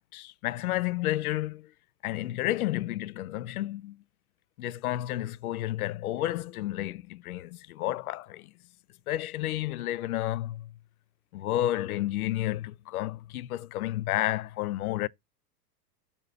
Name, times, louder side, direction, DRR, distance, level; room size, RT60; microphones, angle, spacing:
voice 1, 0.0-1.7 2.0-4.0 4.6-8.5 9.1-10.7 11.3-15.1, left 14 dB, 65° left, 0.5 m, -31 dB
6.6 x 2.7 x 5.7 m
hypercardioid pair, 100°, 48 cm